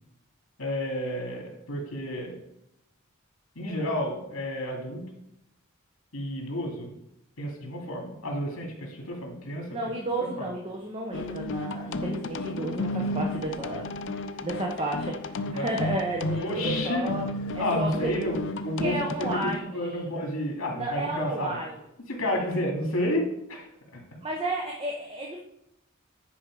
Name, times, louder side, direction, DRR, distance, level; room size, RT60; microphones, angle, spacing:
voice 1, 0.6-2.3 3.6-5.1 6.1-6.9 7.4-9.7 10.4-10.5 15.5-15.7 16.4-17.1 17.6-18.4 18.6-19.1 19.6-21.6 22.1-23.7 23.9-24.0, left 1 dB, 75° left, 1 dB, 2.4 m, -31 dB
voice 2, 9.7-17.3 17.5-18.2 18.8-20.1 20.7-21.8 22.3-22.4 24.2-25.4, right 1 dB, 25° right, 0 dB, 0.9 m, -32 dB
sound 1, 11.1-19.6, left 2 dB, 60° left, 0.5 m, -33 dB
10.0 x 4.6 x 4.8 m, 0.84 s
head